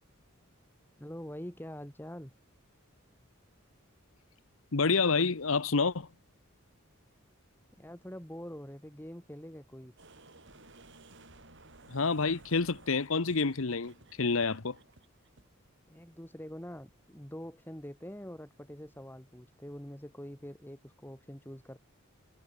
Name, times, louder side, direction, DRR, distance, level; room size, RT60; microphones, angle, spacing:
voice 1, 1.0-2.3 7.8-9.9 15.9-21.8, equal, 10° left, 3.0 m, -45 dB
voice 2, 4.7-6.1 11.9-13.9 14.2-14.8, left 4 dB, 70° left, 1.0 m, -28 dB
sound 1, 10.0-15.4, right 2 dB, 55° right, 5.7 m, -56 dB
head